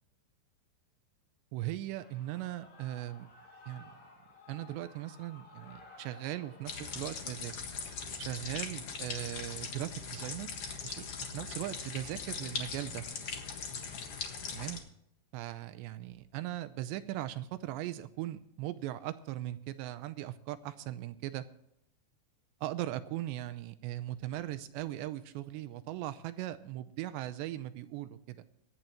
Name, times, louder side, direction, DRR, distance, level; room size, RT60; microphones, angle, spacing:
voice 1, 1.5-3.3 3.7-3.9 4.5-7.5 8.2-10.5 10.8-11.1 11.3-13.0 14.5-14.8 15.3-21.5 22.6-28.4, right 14 dB, 80° right, 12 dB, 2.7 m, -39 dB
Shout / Cheering, 1.9-7.3, left 3 dB, 60° left, 6.5 m, -56 dB
sound 1, 6.7-14.8, left 5 dB, 80° left, 1.3 m, -40 dB
25.0 x 9.2 x 3.0 m, 0.76 s
omnidirectional pair, 5.3 m